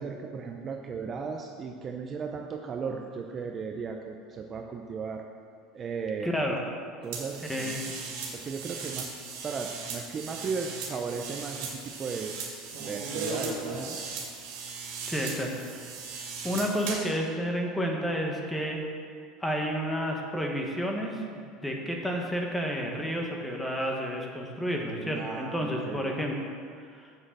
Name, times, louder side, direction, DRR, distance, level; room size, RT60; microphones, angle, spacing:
voice 1, 0.0-5.2 5.7-6.5 7.0-7.7 8.3-9.2 9.4-12.3 12.8-14.0 25.0-26.1, right 5 dB, 25° right, 3 dB, 0.6 m, -36 dB
voice 2, 6.2-6.6 7.5-7.9 15.1-15.8 16.4-18.8 19.4-26.4 26.9-27.1, equal, 5° left, 0 dB, 1.2 m, -31 dB
sound 1, 7.1-17.1, right 4 dB, 70° right, 2.5 m, -37 dB
7.5 x 6.3 x 7.3 m, 2.1 s
supercardioid pair, 150°, 0 cm